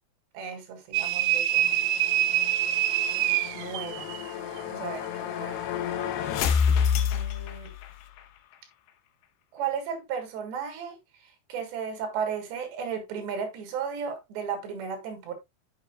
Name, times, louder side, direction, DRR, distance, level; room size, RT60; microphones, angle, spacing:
voice 1, 0.3-1.8 3.5-4.1 4.5-5.8 7.1-7.7 9.5-11.0 11.2-15.3, right 7 dB, 70° right, 3.9 m, -35 dB
sound 1, 0.9-4.3, right 12 dB, 85° right, 3.1 m, -25 dB
sound 2, 1.5-8.3, left 7 dB, 75° left, 2.7 m, -30 dB
8.0 x 7.4 x 2.2 m
omnidirectional pair, 5.4 m